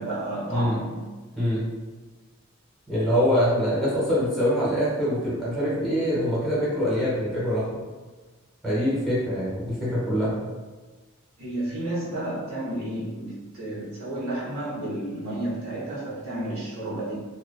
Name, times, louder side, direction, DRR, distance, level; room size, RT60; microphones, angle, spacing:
voice 1, 0.0-1.6 11.4-17.1, right 1 dB, 75° right, -7 dB, 0.9 m, -32 dB
voice 2, 0.5-0.8 1.4-1.7 2.9-7.8 8.6-10.4, equal, ahead, -9 dB, 0.9 m, -24 dB
2.4 x 2.2 x 2.4 m, 1.3 s
head